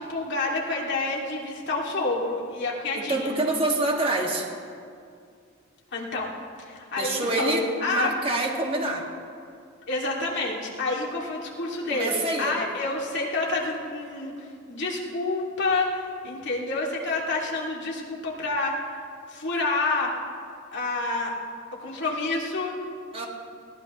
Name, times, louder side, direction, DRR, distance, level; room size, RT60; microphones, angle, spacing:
voice 1, 0.0-3.3 5.9-6.3 6.6-8.1 9.9-18.8 19.3-20.1 20.7-21.3 21.8-22.8, left 3 dB, 60° left, -2 dB, 2.6 m, -28 dB
voice 2, 2.9-4.5 7.0-9.0 11.9-12.5 23.1-23.3, right 2 dB, 25° right, 0 dB, 2.0 m, -26 dB
21.5 x 17.0 x 3.1 m, 2.3 s
head